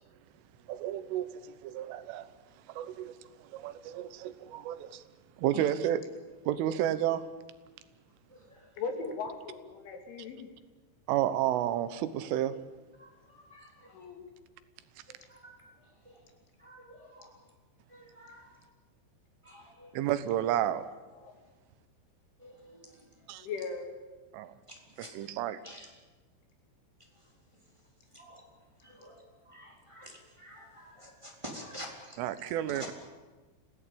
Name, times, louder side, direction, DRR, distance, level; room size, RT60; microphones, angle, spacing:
voice 1, 0.7-2.3 2.8-3.1 3.5-5.0 5.4-6.0 6.5-7.3 11.1-12.6 19.9-20.9 23.3-23.5 24.3-24.5 25.0-25.6 32.2-32.9, right 12 dB, 85° right, 13 dB, 3.6 m, -31 dB
voice 2, 8.8-10.5 13.9-14.2 21.1-21.4 23.4-24.0, left 4 dB, 75° left, 4 dB, 5.0 m, -38 dB
voice 3, 16.6-17.3 18.0-18.4 19.5-19.9 22.4-22.8 25.0-25.1 25.6-25.9 28.1-28.4 28.9-29.1 29.5-31.9, equal, 5° right, 0 dB, 2.8 m, -48 dB
26.5 x 16.5 x 8.7 m, 1.3 s
omnidirectional pair, 5.6 m